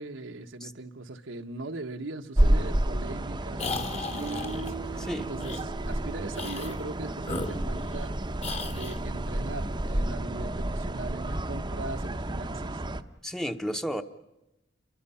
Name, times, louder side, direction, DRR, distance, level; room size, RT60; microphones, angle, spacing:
voice 1, 0.0-8.2 8.7-12.8, right 2 dB, 80° right, 1.3 m, -40 dB
sound 1, 2.3-13.0, right 1 dB, 25° right, 0.8 m, -30 dB
voice 2, 2.4-2.8 5.0-5.3 13.2-14.0, equal, 5° left, 0.9 m, -33 dB
sound 2, 3.6-4.7 5.4-5.6 6.3-6.8 7.2-8.1 8.4-9.0, left 3 dB, 35° left, 1.3 m, -36 dB
Guitar, 4.2-8.1, right 4 dB, 60° right, 1.0 m, -41 dB
29.5 x 23.0 x 5.7 m
head